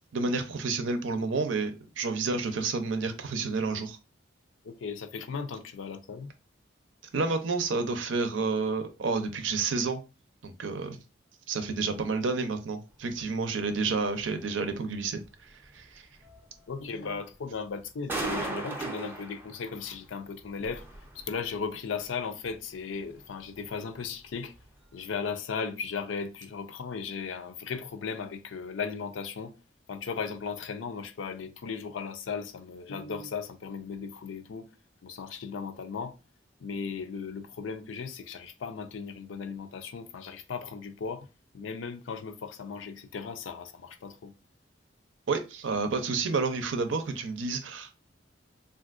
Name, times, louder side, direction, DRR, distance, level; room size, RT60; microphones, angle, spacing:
voice 1, 0.1-4.0 7.1-10.0 10.4-11.0 11.5-15.2 15.7-16.0 45.3-47.9, right 4 dB, 90° right, 0.6 m, -30 dB
voice 2, 4.6-6.3 16.7-20.9 21.1-24.5 24.9-29.5 29.9-34.7 35.0-36.1 36.6-41.3 41.5-44.3, left 5 dB, 90° left, 0.4 m, -36 dB
sound 1, 13.1-13.3 13.7-13.9 14.2-14.3 14.7-14.8 15.2-15.3 15.7-15.8 16.2-16.8 17.3-17.5 17.8-17.9 18.1-20.1 20.4-21.6 21.9-22.1 22.4-22.6 23.0-23.7 24.0-24.2 24.5-24.7 25.0-25.1, right 2 dB, 10° right, 0.5 m, -38 dB
3.4 x 2.5 x 2.4 m
head